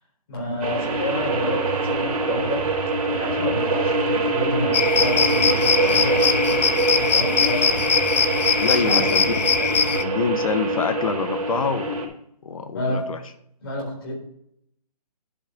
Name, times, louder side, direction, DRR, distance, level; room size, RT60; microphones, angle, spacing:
voice 1, 0.3-2.7 3.1-6.6 6.9-7.9 8.7-9.1 12.7-13.1 13.6-14.1, left 1 dB, 35° left, -1 dB, 4.1 m, -29 dB
sound 1, 0.6-12.1, right 3 dB, 60° right, 3.7 m, -24 dB
sound 2, 4.7-10.0, left 5 dB, 85° left, 1.0 m, -21 dB
voice 2, 8.6-12.2 12.4-13.2, left 5 dB, 55° left, 9 dB, 1.1 m, -26 dB
11.0 x 5.8 x 5.3 m, 0.73 s
hypercardioid pair, 170°, 21 cm